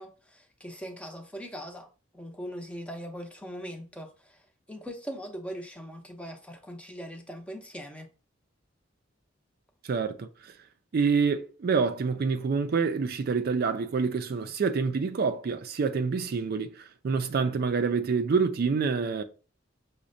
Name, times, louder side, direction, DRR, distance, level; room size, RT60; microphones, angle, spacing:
voice 1, 0.0-4.4 4.7-8.1, equal, 5° left, 0.6 m, -41 dB
voice 2, 9.8-10.5 10.9-19.2, right 5 dB, 50° right, 0.4 m, -27 dB
5.9 x 2.1 x 2.5 m
head